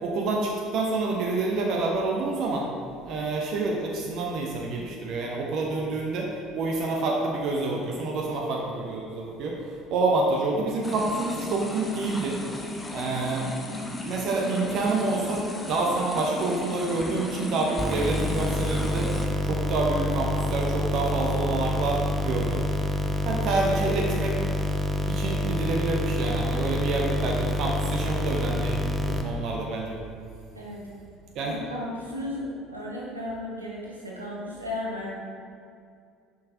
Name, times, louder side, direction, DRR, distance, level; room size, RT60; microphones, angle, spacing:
voice 1, 0.0-2.7 3.0-12.4 12.9-13.5 14.0-19.1 19.4-22.7 23.2-24.4 25.0-30.0 31.3-31.5, right 3 dB, 50° right, -1 dB, 0.8 m, -28 dB
sound 1, 10.8-19.3, left 2 dB, 15° left, 0.9 m, -35 dB
sound 2, 17.8-29.2, equal, 20° right, 0.7 m, -27 dB
voice 2, 30.5-30.9 31.4-35.1, left 1 dB, 85° right, -5 dB, 1.1 m, -35 dB
7.6 x 5.6 x 3.6 m, 2.4 s
figure-of-eight pair, 60°, 0 cm